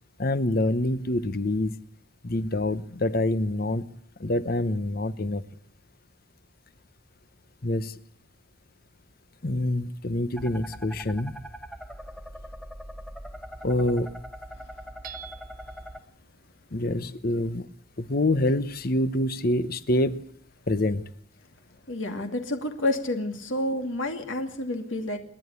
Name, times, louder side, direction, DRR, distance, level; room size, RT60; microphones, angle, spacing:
voice 1, 0.2-1.8 2.2-3.8 4.2-5.4 7.6-8.0 9.4-11.3 13.6-14.1 16.7-17.7 18.0-20.3 20.7-21.0, left 1 dB, 45° left, 14 dB, 1.0 m, -26 dB
sound 1, 10.4-16.0, equal, ahead, 1.1 m, -42 dB
Hammer / Chink clink, 15.0-15.8, right 9 dB, 45° right, 1.3 m, -43 dB
voice 2, 21.9-25.2, left 1 dB, 70° left, 5 dB, 2.6 m, -29 dB
28.5 x 11.0 x 8.3 m, 0.67 s
head